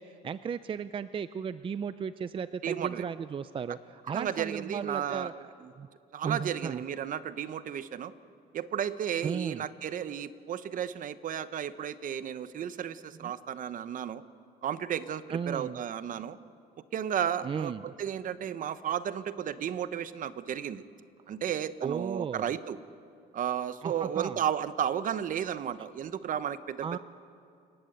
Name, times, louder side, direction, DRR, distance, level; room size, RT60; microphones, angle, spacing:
voice 1, 0.0-5.9 6.2-6.8 9.2-9.6 13.2-13.3 15.3-15.8 17.4-17.9 21.8-22.5 23.8-24.4 26.8-27.0, right 6 dB, 30° right, 13 dB, 0.5 m, -35 dB
voice 2, 2.6-3.0 4.1-5.3 6.1-8.1 8.5-14.2 14.6-16.4 16.9-20.8 21.3-22.8 23.3-27.0, right 9 dB, 50° right, 13 dB, 1.0 m, -33 dB
29.0 x 18.0 x 8.1 m, 2.5 s
cardioid pair, 110°, 17 cm